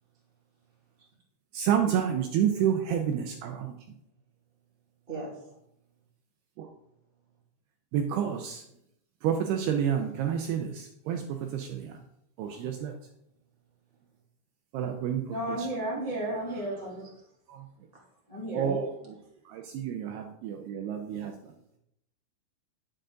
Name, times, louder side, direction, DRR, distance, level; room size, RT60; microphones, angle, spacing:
voice 1, 0.7-1.1 5.1-5.5 12.4-12.7 17.1-17.2, right 3 dB, 25° right, -3 dB, 1.2 m, -42 dB
voice 2, 1.5-3.8 6.6-6.7 7.9-8.6 9.2-12.0 12.4-12.9 14.7-15.7 16.0-16.1 17.5-17.7 18.5-19.2 19.5-21.5, right 8 dB, 85° right, 4 dB, 2.4 m, -29 dB
voice 3, 15.3-17.0 18.3-18.7, right 1 dB, 85° left, -5 dB, 0.3 m, -33 dB
10.0 x 7.6 x 3.8 m, 0.77 s
omnidirectional pair, 5.3 m